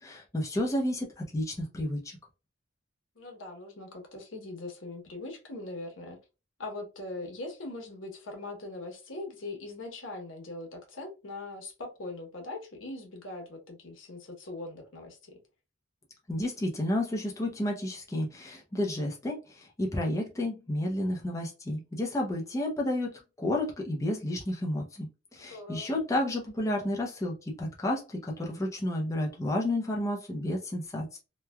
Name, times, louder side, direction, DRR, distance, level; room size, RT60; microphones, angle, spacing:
voice 1, 0.0-2.0 16.3-31.2, left 1 dB, 15° left, -1 dB, 0.5 m, -31 dB
voice 2, 3.2-6.2 6.6-15.4 25.4-25.9, left 2 dB, 85° left, 2 dB, 1.0 m, -41 dB
3.0 x 2.2 x 2.2 m, 0.29 s
head